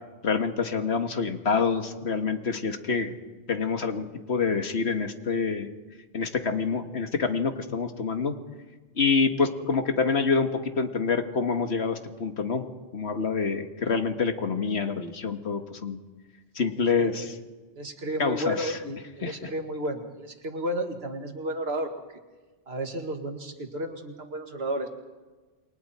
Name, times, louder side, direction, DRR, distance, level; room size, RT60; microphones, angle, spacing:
voice 1, 0.2-3.1 3.5-5.7 6.1-8.3 9.0-12.7 12.9-16.0 16.6-17.3 18.2-18.8 19.2-19.5, left 5 dB, 75° left, 7 dB, 1.8 m, -27 dB
voice 2, 17.8-21.9 22.7-24.9, equal, 70° right, 5 dB, 2.2 m, -32 dB
28.5 x 23.0 x 4.3 m, 1.3 s
omnidirectional pair, 1.1 m